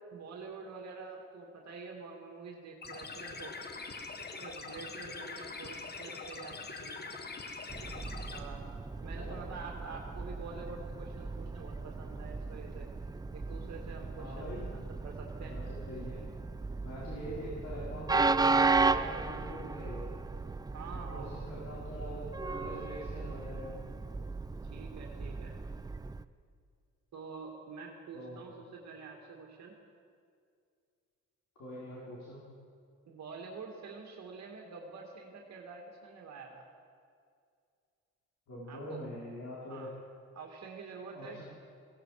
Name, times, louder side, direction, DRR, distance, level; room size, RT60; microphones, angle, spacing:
voice 1, 0.1-3.5 4.2-7.3 8.3-8.6 9.0-12.9 13.3-15.6 20.7-21.4 24.7-25.6 27.1-29.8 33.0-36.7 38.6-39.0 39.7-39.9 40.3-41.4, right 4 dB, 60° right, 0 dB, 2.4 m, -47 dB
sound 1, 2.8-8.4, left 4 dB, 35° left, 1.4 m, -43 dB
Train, 7.7-26.2, right 3 dB, 15° right, 0.4 m, -35 dB
voice 2, 14.2-14.6 15.5-16.2 16.8-20.1 20.9-23.7 28.1-28.5 31.6-32.4 38.5-39.9 41.1-41.4, equal, 65° left, -7 dB, 4.5 m, -43 dB
17.0 x 16.0 x 5.0 m, 2.2 s
cardioid pair, 90°, 30 cm